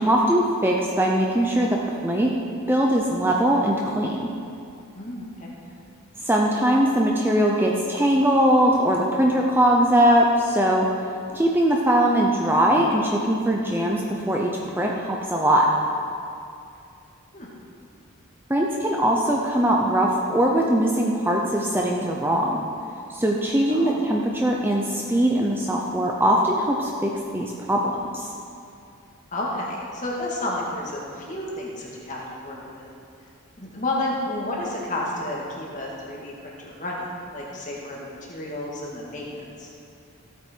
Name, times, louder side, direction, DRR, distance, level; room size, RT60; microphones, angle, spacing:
voice 1, 0.0-2.3 2.7-4.3 6.2-10.9 11.3-15.7 18.5-22.6 23.1-28.3, right 1 dB, 10° right, -1 dB, 0.7 m, -21 dB
voice 2, 5.0-5.5 17.3-17.5 23.7-23.9 29.3-32.9 33.6-39.7, left 1 dB, 35° left, -3 dB, 2.2 m, -31 dB
15.5 x 8.6 x 4.6 m, 2.6 s
head